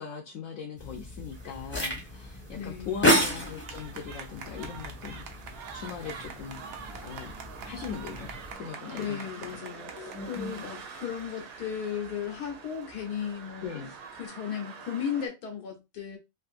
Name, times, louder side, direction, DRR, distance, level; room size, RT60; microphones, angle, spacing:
voice 1, 0.0-6.6 7.0-7.3 7.6-8.3 8.6-9.6 10.0-10.7 13.6-13.9, left 6 dB, 70° left, 0.9 m, -40 dB
sound 1, 0.8-8.5, equal, 10° left, 0.7 m, -32 dB
sound 2, 1.3-15.3, right 5 dB, 90° right, 1.3 m, -48 dB
voice 2, 2.5-3.1 8.9-13.7 14.2-16.2, left 8 dB, 90° left, 1.5 m, -35 dB
sound 3, 3.4-14.3, right 6 dB, 70° right, 1.1 m, -47 dB
3.5 x 2.6 x 2.5 m
omnidirectional pair, 1.6 m